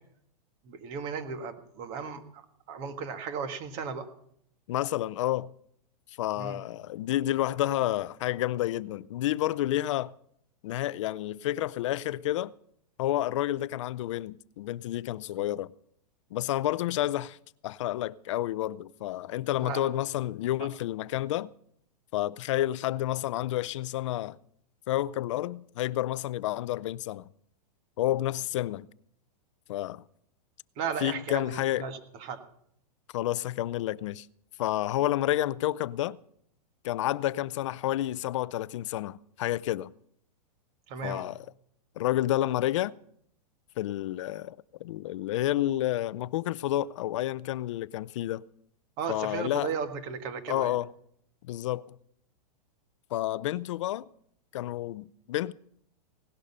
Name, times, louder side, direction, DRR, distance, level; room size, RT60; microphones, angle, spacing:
voice 1, 0.6-4.1 6.3-6.6 19.6-19.9 20.6-20.7 30.8-32.4 40.9-41.3 49.0-50.8, right 6 dB, 30° right, 1.6 m, -36 dB
voice 2, 4.7-5.5 6.2-10.1 10.6-12.5 13.0-15.7 16.3-17.4 17.6-21.5 22.1-24.4 24.9-27.3 28.0-28.9 29.7-30.0 31.0-31.8 33.1-34.3 34.6-36.2 36.8-39.9 41.0-41.5 42.0-43.0 43.8-48.4 49.1-49.7 50.5-50.9 51.4-52.0 53.1-54.1 54.5-55.5, left 14 dB, 50° left, 0.5 m, -30 dB
18.0 x 11.5 x 5.5 m
supercardioid pair, 165°, 20 cm